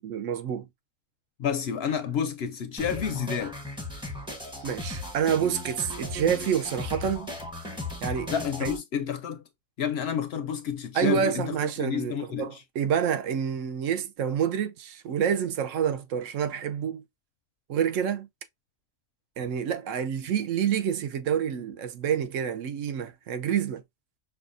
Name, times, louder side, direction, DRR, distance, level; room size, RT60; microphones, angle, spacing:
voice 1, 0.0-0.7 4.6-7.3 8.0-8.3 8.6-8.7 10.9-17.0 17.7-18.3 19.4-23.8, right 8 dB, 75° right, 1.0 m, -28 dB
voice 2, 1.4-3.6 8.3-9.4 9.8-12.6, left 8 dB, 65° left, 0.7 m, -30 dB
sound 1, 2.8-8.8, left 2 dB, 5° right, 0.6 m, -36 dB
5.6 x 2.4 x 2.5 m
omnidirectional pair, 1.4 m